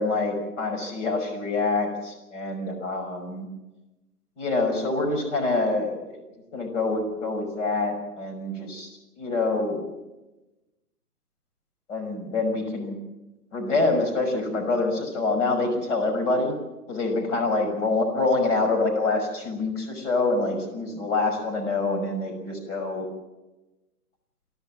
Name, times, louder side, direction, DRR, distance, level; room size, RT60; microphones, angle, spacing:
voice 1, 0.0-3.5 4.4-6.2 6.5-8.9 9.2-9.9 11.9-13.0 13.5-16.6 16.9-23.1, left 3 dB, 50° left, 3 dB, 5.9 m, -26 dB
24.0 x 17.0 x 7.4 m, 1.0 s
figure-of-eight pair, 135°, 47 cm